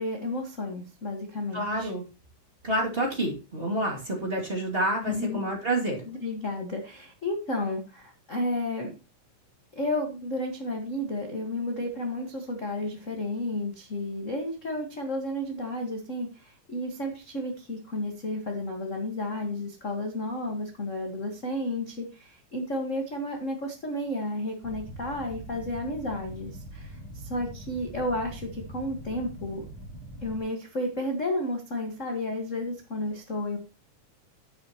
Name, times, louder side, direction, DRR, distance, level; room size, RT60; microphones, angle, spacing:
voice 1, 0.0-1.9 5.0-5.4 6.1-8.9 9.7-29.6 30.2-33.6, left 1 dB, 35° left, 2 dB, 1.5 m, -32 dB
voice 2, 1.5-2.0 2.6-6.1, right 1 dB, 20° right, -2 dB, 2.5 m, -28 dB
sound 1, 24.6-30.4, right 1 dB, 20° left, 4.2 m, -43 dB
11.5 x 9.3 x 3.0 m, 0.30 s
omnidirectional pair, 3.5 m